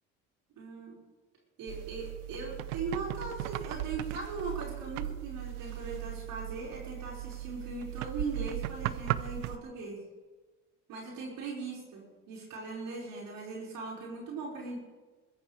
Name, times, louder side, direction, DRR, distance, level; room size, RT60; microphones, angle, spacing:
voice 1, 0.6-1.0 1.6-10.0 10.9-14.8, right 3 dB, 65° right, -4 dB, 5.4 m, -39 dB
sound 1, 1.7-9.6, right 15 dB, 85° right, 0.7 m, -37 dB
21.5 x 14.5 x 3.4 m, 1.3 s
hypercardioid pair, 70°, 36 cm